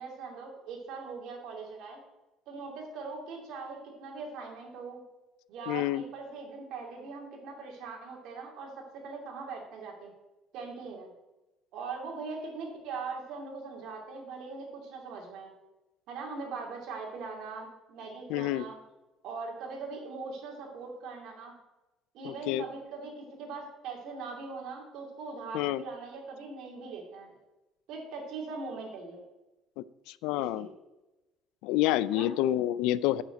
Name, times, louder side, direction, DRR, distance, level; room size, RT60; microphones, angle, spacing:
voice 1, 0.0-2.0 2.5-5.0 5.5-10.1 10.5-11.1 11.7-15.5 16.1-18.8 19.2-21.5 22.1-27.3 27.9-29.2 30.4-30.7 32.1-32.3, right 4 dB, 55° right, 0 dB, 2.7 m, -41 dB
voice 2, 5.7-6.0 18.3-18.6 22.2-22.6 25.5-25.8 29.8-29.9 30.2-30.7 31.6-33.2, left 14 dB, 85° left, 18 dB, 0.4 m, -28 dB
8.9 x 6.1 x 7.9 m, 1.1 s
cardioid pair, 180°, 0 cm